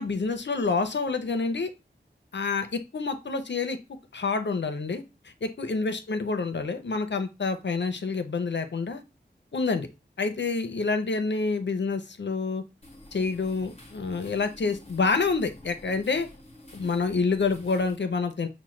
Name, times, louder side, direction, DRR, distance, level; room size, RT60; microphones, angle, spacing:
voice 1, 0.0-1.7 2.3-3.8 4.1-9.0 9.5-9.9 10.2-12.6 13.1-16.3 16.7-18.5, left 4 dB, 70° left, 8 dB, 0.6 m, -28 dB
sound 1, 12.8-18.0, left 1 dB, 35° left, 1.0 m, -49 dB
5.9 x 2.1 x 3.1 m, 0.27 s
wide cardioid pair, 60°, 19 cm